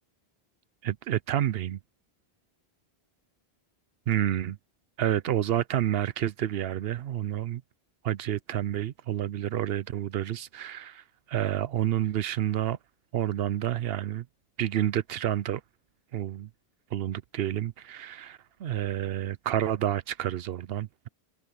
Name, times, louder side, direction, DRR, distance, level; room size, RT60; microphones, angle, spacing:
voice 1, 0.8-1.8 4.1-4.6 5.0-7.6 8.0-12.8 13.1-14.3 14.6-15.6 16.1-16.5 16.9-21.1, right 11 dB, 70° right, 0.8 m, -29 dB
omnidirectional pair, 1.1 m